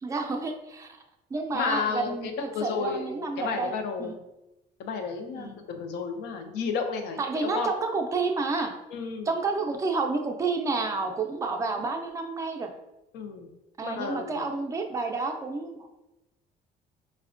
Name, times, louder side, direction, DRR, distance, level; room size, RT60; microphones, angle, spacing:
voice 1, 0.0-0.9 1.3-3.7 4.0-4.1 5.3-5.5 7.2-8.7 9.3-12.7 13.8-16.0, right 3 dB, 20° right, 3 dB, 0.4 m, -30 dB
voice 2, 1.5-4.1 4.8-7.7 8.9-9.3 13.1-13.5 13.8-14.5, left 5 dB, 85° left, 5 dB, 0.5 m, -32 dB
4.1 x 2.1 x 2.4 m, 0.95 s
cardioid pair, 110°, 17 cm